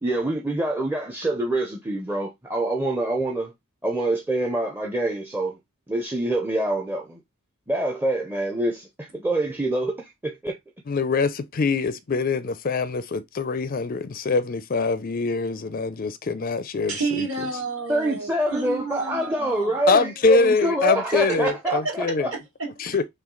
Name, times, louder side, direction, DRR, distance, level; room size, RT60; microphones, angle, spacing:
voice 1, 0.0-3.5 3.8-5.6 5.9-7.2 7.7-10.6 17.9-22.3, right 1 dB, 10° right, 0.5 m, -26 dB
voice 2, 10.9-17.3 19.9-22.3 22.8-23.0, left 4 dB, 40° left, 0.4 m, -24 dB
voice 3, 16.9-19.7 21.3-21.4 22.3-23.0, right 4 dB, 55° right, 2.5 m, -31 dB
5.8 x 2.3 x 3.7 m
head